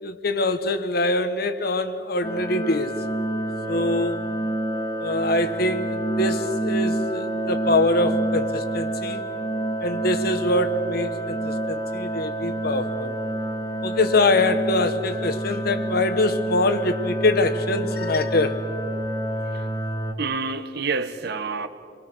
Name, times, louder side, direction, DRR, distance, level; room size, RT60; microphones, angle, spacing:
voice 1, 0.0-2.9 3.7-4.2 5.0-9.2 9.8-13.2 13.8-18.6, left 2 dB, 60° left, 1.5 m, -24 dB
sound 1, 2.2-20.1, right 1 dB, 20° left, 1.9 m, -28 dB
voice 2, 20.2-21.7, right 4 dB, 65° right, 1.4 m, -28 dB
30.0 x 23.0 x 6.3 m
head